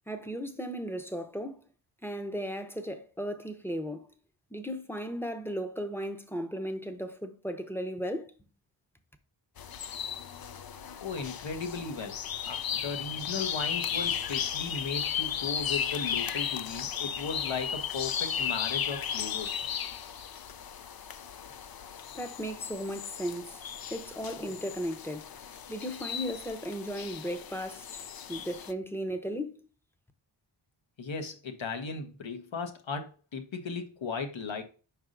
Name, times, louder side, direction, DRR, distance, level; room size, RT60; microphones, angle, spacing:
voice 1, 0.1-1.6 2.0-4.1 4.5-8.3 22.1-23.6 23.9-25.3 25.7-28.0 28.3-29.6, equal, 5° left, 0.8 m, -36 dB
sound 1, 9.6-28.7, left 8 dB, 50° left, 0.5 m, -35 dB
voice 2, 11.0-12.2 12.4-19.6 31.0-34.6, left 4 dB, 70° left, 1.1 m, -36 dB
5.2 x 4.8 x 3.8 m
wide cardioid pair, 60°, 47 cm